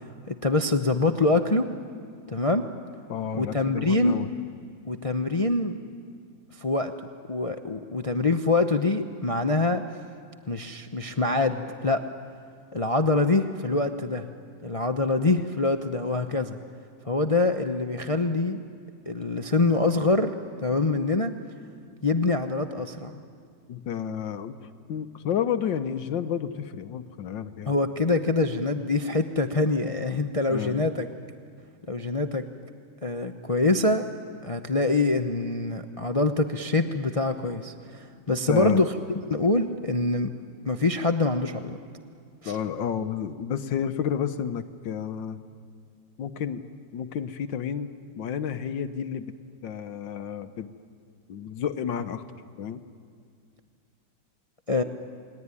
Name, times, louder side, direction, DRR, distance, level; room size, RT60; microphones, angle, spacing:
voice 1, 0.3-1.7 2.3-2.7 3.3-4.3 4.8-5.8 6.6-6.9 7.3-9.8 10.5-12.0 12.7-14.2 14.6-16.6 17.1-18.6 19.1-20.3 20.6-21.3 22.0-23.1 27.7-31.1 31.9-32.4 33.0-34.1 34.4-38.9 39.3-40.3 40.6-41.8 42.4-42.6 54.7-54.8, left 2 dB, 45° left, 6 dB, 0.4 m, -25 dB
voice 2, 3.1-4.3 23.7-24.5 24.9-27.7 30.5-30.9 38.5-38.8 42.4-45.4 46.2-46.6 46.9-47.9 48.2-49.3 49.6-50.7 51.3-52.2 52.6-52.8, left 8 dB, 75° left, 10 dB, 1.6 m, -30 dB
29.0 x 21.0 x 9.8 m, 2.3 s
omnidirectional pair, 2.1 m